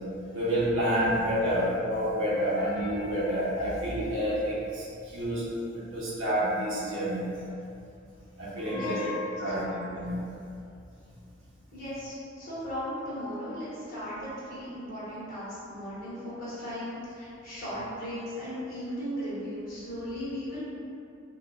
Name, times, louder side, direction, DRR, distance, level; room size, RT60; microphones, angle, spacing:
voice 1, 0.3-5.5 5.8-7.2 8.4-10.3, equal, 75° right, -8 dB, 0.7 m, -29 dB
voice 2, 8.7-9.0 11.7-20.6, equal, 45° left, -12 dB, 1.2 m, -37 dB
3.5 x 2.3 x 2.4 m, 2.7 s
head